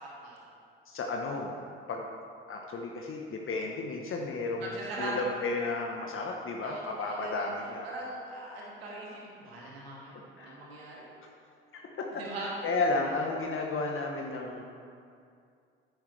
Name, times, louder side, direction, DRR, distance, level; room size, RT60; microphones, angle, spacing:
voice 1, 0.9-1.5 1.9-2.1 2.5-7.9 10.4-10.6 11.7-14.6, left 3 dB, 45° left, 1 dB, 1.1 m, -33 dB
voice 2, 4.6-5.2 6.6-7.5 7.8-11.1 12.1-12.5, right 2 dB, 85° right, -4 dB, 2.0 m, -41 dB
10.0 x 9.6 x 3.3 m, 2.4 s
hypercardioid pair, 55°, 30 cm